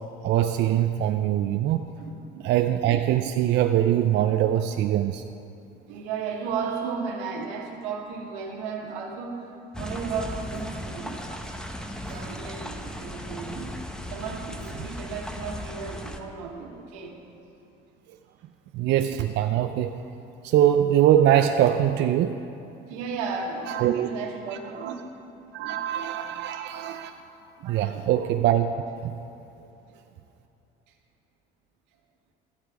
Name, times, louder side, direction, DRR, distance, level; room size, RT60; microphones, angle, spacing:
voice 1, 0.2-1.8 2.4-5.2 12.1-12.2 18.7-19.9 20.4-22.4 23.7-24.1 24.8-24.9 25.5-27.1 27.6-28.8 29.0-29.1, right 11 dB, 55° right, 7 dB, 0.5 m, -22 dB
voice 2, 2.0-2.4 5.8-9.5 9.8-11.2 11.8-13.7 14.1-17.2 20.3-20.4 22.9-25.0 25.6-25.8 27.6-28.0, right 5 dB, 85° right, 1 dB, 1.6 m, -34 dB
sound 1, 9.7-16.2, left 1 dB, 5° left, 0.9 m, -36 dB
13.5 x 8.1 x 4.9 m, 2.9 s
supercardioid pair, 100°, 21 cm